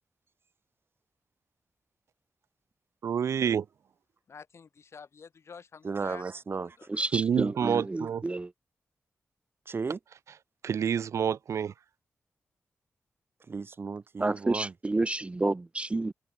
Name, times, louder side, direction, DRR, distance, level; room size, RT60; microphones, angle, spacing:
voice 1, 3.0-3.6 7.1-8.2 10.6-11.7, right 8 dB, 75° right, 0.5 m, -28 dB
voice 2, 4.3-6.2 6.8-7.1, left 5 dB, 60° left, 3.8 m, -48 dB
voice 3, 5.8-6.8 9.7-10.0 13.5-14.7, right 4 dB, 50° right, 2.2 m, -34 dB
voice 4, 6.9-8.5 14.2-16.1, right 2 dB, 25° right, 0.5 m, -30 dB
cardioid pair, 75°, 5 cm